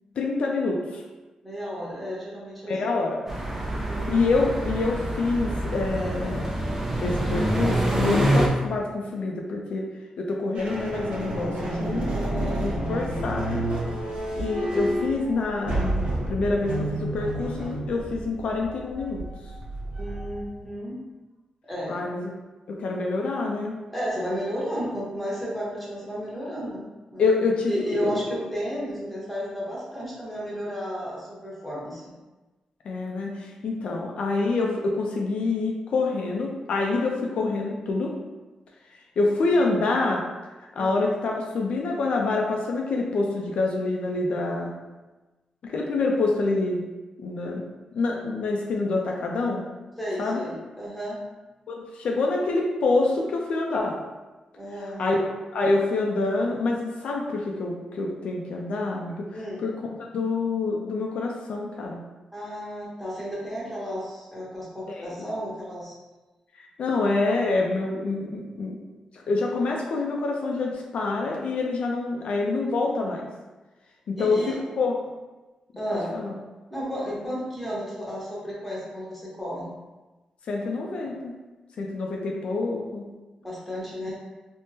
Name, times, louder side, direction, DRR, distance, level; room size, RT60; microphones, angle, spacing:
voice 1, 0.2-1.0 2.7-3.2 4.1-6.5 7.0-9.9 10.2-12.2 12.6-13.7 14.4-15.9 16.3-19.3 21.9-22.3 22.7-23.8 27.2-28.2 32.8-38.2 39.2-40.3 40.6-44.8 45.6-46.9 47.2-47.7 47.9-49.7 50.2-50.5 51.7-54.0 55.0-55.2 55.5-59.8 60.1-62.0 64.9-65.3 66.5-68.8 69.3-73.3 74.1-75.0 75.9-76.3 80.5-81.4 81.8-83.1, left 3 dB, 65° left, 0 dB, 0.3 m, -26 dB
voice 2, 1.4-2.8 3.6-4.1 12.1-12.6 20.0-21.0 21.7-22.0 23.9-26.8 27.1-27.3 27.7-32.1 40.8-41.0 50.0-51.2 54.5-55.1 59.3-59.6 62.3-65.9 74.2-74.6 75.8-76.1 76.7-79.7 83.4-84.2, equal, ahead, -6 dB, 0.9 m, -33 dB
sound 1, 3.3-8.5, right 1 dB, 15° right, 0.5 m, -26 dB
sound 2, 10.6-20.7, right 1 dB, 60° right, 0.6 m, -30 dB
3.5 x 2.0 x 2.7 m, 1.2 s
wide cardioid pair, 135°, 2 cm